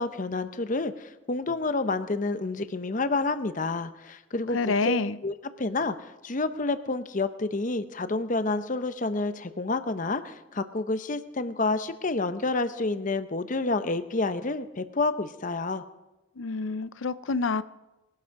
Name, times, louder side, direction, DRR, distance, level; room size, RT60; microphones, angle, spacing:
voice 1, 0.0-15.8, left 3 dB, 40° left, 11 dB, 0.8 m, -29 dB
voice 2, 4.5-5.2 16.4-17.6, left 4 dB, 80° left, 15 dB, 0.6 m, -27 dB
20.5 x 12.5 x 4.7 m, 1.0 s
head